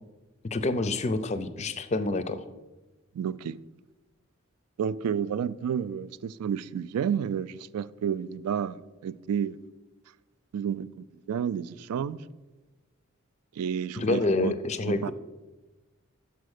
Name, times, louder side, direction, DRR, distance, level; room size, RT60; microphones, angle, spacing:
voice 1, 0.5-2.4 14.0-15.1, left 2 dB, 30° left, 0.4 m, -27 dB
voice 2, 3.1-3.6 4.8-9.6 10.5-12.2 13.6-14.5 14.9-15.1, right 8 dB, 90° right, 0.3 m, -31 dB
6.6 x 5.1 x 6.4 m
head